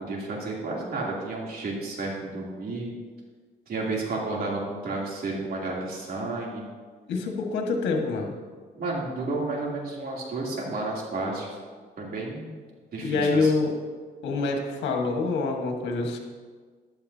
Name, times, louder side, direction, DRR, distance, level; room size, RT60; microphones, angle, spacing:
voice 1, 0.0-2.9 3.7-6.7 8.7-11.6 12.0-12.6 12.9-13.5, right 2 dB, 60° right, -3 dB, 3.1 m, -31 dB
voice 2, 7.1-8.4 13.0-13.7 14.2-16.2, left 3 dB, 90° left, 2 dB, 1.7 m, -26 dB
14.5 x 11.0 x 2.8 m, 1.5 s
cardioid pair, 110°, 18 cm